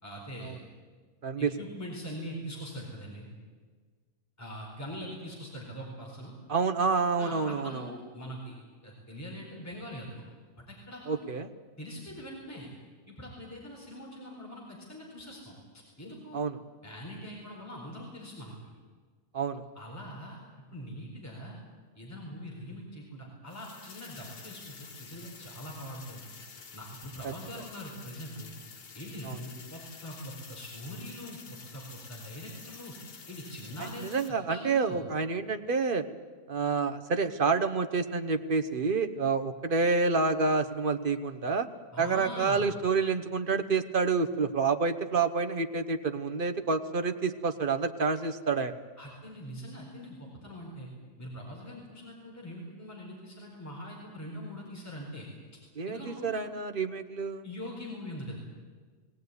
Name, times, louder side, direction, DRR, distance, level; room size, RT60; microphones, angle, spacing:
voice 1, 0.0-0.6 1.4-3.3 4.4-6.3 7.2-8.6 8.8-10.2 10.6-11.2 11.8-12.7 13.1-16.4 16.8-18.5 19.7-20.4 20.7-21.6 21.9-26.2 26.7-28.5 28.9-31.4 31.7-32.9 33.3-35.0 41.9-42.6 49.0-50.9 51.2-55.3 55.9-56.4 57.4-58.4, equal, 10° left, -2 dB, 4.3 m, -42 dB
voice 2, 6.5-7.9 11.1-11.5 16.3-16.6 19.3-19.6 27.2-27.3 29.2-29.4 33.8-36.1 36.5-41.7 42.0-48.7 55.8-57.4, right 4 dB, 35° right, 9 dB, 1.0 m, -28 dB
sound 1, 23.5-34.3, left 5 dB, 85° left, 2.3 m, -49 dB
20.5 x 17.5 x 9.6 m, 1.5 s
omnidirectional pair, 1.7 m